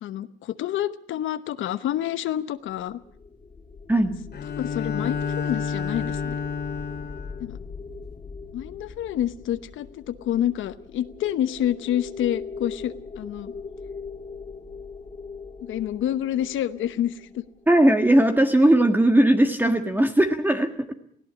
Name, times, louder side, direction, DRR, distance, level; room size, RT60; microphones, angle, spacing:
voice 1, 0.0-3.0 4.5-6.4 7.4-7.6 8.5-13.5 15.6-17.4, left 11 dB, 80° left, 13 dB, 1.0 m, -28 dB
sound 1, 2.8-18.0, left 4 dB, 30° left, 1.8 m, -40 dB
Bowed string instrument, 4.3-7.5, left 6 dB, 55° left, 2.3 m, -30 dB
voice 2, 17.7-20.9, right 1 dB, 10° right, 6 dB, 1.6 m, -19 dB
18.5 x 16.5 x 8.4 m, 0.65 s
cardioid pair, 90°, 20 cm